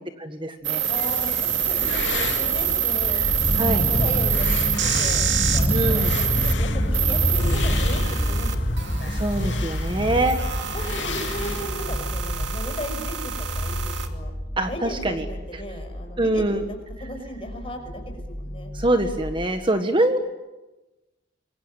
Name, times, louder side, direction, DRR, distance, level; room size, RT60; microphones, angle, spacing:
voice 1, 0.2-0.8 3.5-3.8 5.7-6.1 9.1-10.4 14.6-15.2 15.5-15.6 16.2-16.7 18.7-20.2, right 1 dB, 25° right, 7 dB, 1.6 m, -24 dB
sound 1, 0.6-6.5 6.9-14.1, right 10 dB, 75° right, 2.5 m, -26 dB
sound 2, 0.8-12.0, left 5 dB, 75° left, 2.8 m, -35 dB
voice 2, 0.9-3.2 3.6-9.1 10.4-10.5 10.7-14.3 14.7-18.7, left 1 dB, 30° left, 4 dB, 6.1 m, -36 dB
sound 3, 1.6-19.5, equal, 10° left, 3.6 m, -27 dB
27.0 x 23.5 x 9.2 m, 1.1 s
head